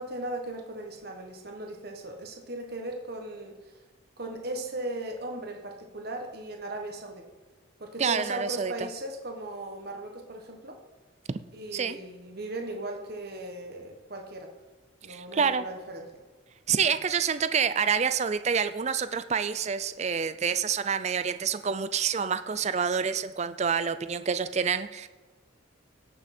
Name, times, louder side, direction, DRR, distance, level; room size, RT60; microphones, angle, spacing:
voice 1, 0.0-3.7 4.2-7.2 7.8-10.8 11.5-14.5 15.0-16.2, right 1 dB, 50° right, 2 dB, 1.3 m, -37 dB
voice 2, 8.0-8.7 11.7-12.0 15.1-15.7 16.7-25.1, right 6 dB, 35° right, 12 dB, 0.4 m, -27 dB
17.0 x 6.2 x 4.3 m, 1.3 s
head